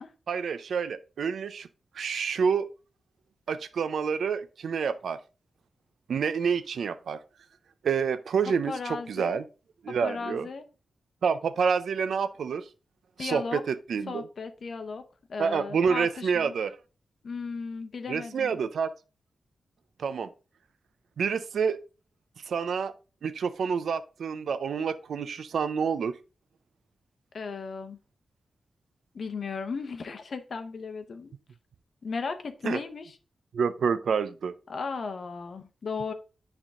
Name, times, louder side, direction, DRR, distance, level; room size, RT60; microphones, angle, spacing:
voice 1, 0.3-1.7 1.9-2.7 3.5-5.2 6.1-7.2 7.8-9.4 9.8-10.5 11.2-12.6 13.2-14.3 15.4-16.8 18.1-18.9 20.0-20.3 21.2-21.8 22.5-22.9 23.2-26.2 32.6-32.8 33.5-34.5, right 6 dB, 80° right, 0.4 m, -28 dB
voice 2, 8.7-9.4 9.9-10.7 13.2-13.6 14.1-15.0 15.3-16.5 17.2-18.6 27.3-28.0 29.1-31.4 32.0-33.1 34.7-36.1, left 4 dB, 50° left, 0.8 m, -36 dB
9.6 x 3.5 x 3.6 m
wide cardioid pair, 160°, 0 cm